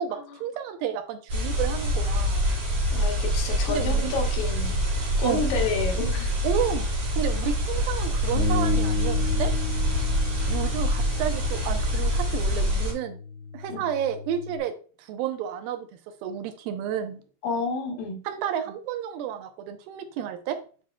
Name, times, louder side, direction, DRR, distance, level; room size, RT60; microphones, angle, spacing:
voice 1, 0.0-2.5 3.7-4.2 5.2-5.5 6.4-6.9 7.1-9.5 10.5-13.2 13.5-17.2 18.3-20.6, right 9 dB, 90° right, 8 dB, 2.6 m, -31 dB
sound 1, 1.3-12.9, equal, 60° right, 4.6 m, -26 dB
voice 2, 2.9-4.8 5.2-6.3 13.7-13.9 17.4-18.2, left 3 dB, 75° left, 2 dB, 2.7 m, -30 dB
Bass guitar, 8.3-14.6, left 4 dB, 55° left, 2.3 m, -31 dB
8.5 x 5.1 x 2.3 m, 0.39 s
omnidirectional pair, 4.0 m